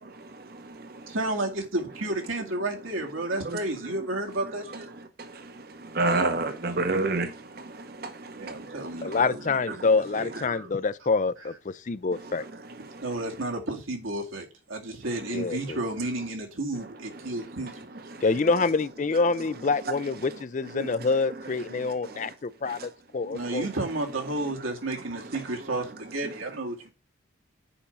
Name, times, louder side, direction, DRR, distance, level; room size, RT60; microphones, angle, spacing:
voice 1, 0.3-1.1 3.4-3.6 5.2-9.2 12.2-13.1 17.3-17.8 18.1-18.2 20.7-21.1 21.7-22.3 22.6-22.9 23.3-23.6, right 2 dB, 50° right, 0.8 m, -32 dB
voice 2, 1.1-4.9 8.4-9.8 10.1-10.7 13.0-17.9 23.2-26.9, right 2 dB, 85° right, 2.2 m, -32 dB
voice 3, 9.0-12.4 15.3-15.8 18.2-23.7, left 4 dB, 35° left, 0.4 m, -26 dB
6.9 x 5.2 x 5.5 m
head